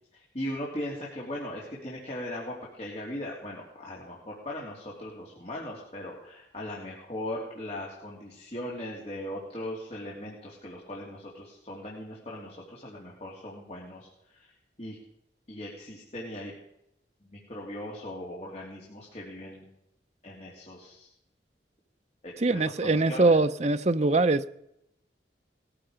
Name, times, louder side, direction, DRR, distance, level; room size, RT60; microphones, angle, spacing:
voice 1, 0.1-14.5 14.8-15.0 15.5-16.5 17.2-19.7 20.2-21.1 22.2-23.4, left 1 dB, 35° left, 3.1 m, -39 dB
voice 2, 22.4-24.6, right 3 dB, 35° right, 0.7 m, -23 dB
20.0 x 14.0 x 5.1 m
head